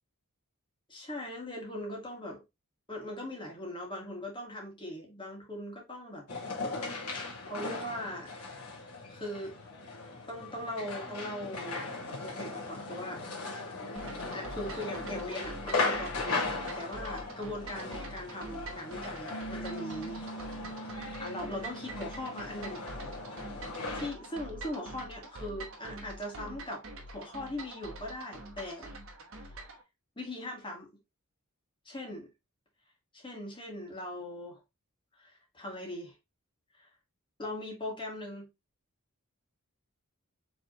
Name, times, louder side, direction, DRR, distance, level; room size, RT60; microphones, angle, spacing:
voice 1, 0.9-2.4 2.9-6.3 7.4-8.3 8.6-8.8 9.1-9.6 10.3-11.9 12.2-13.3 14.3-16.4 16.8-20.3 21.2-22.9 23.9-28.9 30.2-30.9 31.8-32.3 33.1-34.6 35.2-36.1 36.7-36.9 37.4-38.5, left 1 dB, 25° left, 1.6 m, -40 dB
sound 1, 6.3-24.1, left 3 dB, 85° left, 1.6 m, -38 dB
sound 2, 14.0-29.8, right 2 dB, 65° right, 1.1 m, -45 dB
Piano, 19.3-24.4, right 2 dB, 65° left, 1.3 m, -46 dB
4.9 x 3.3 x 3.0 m
head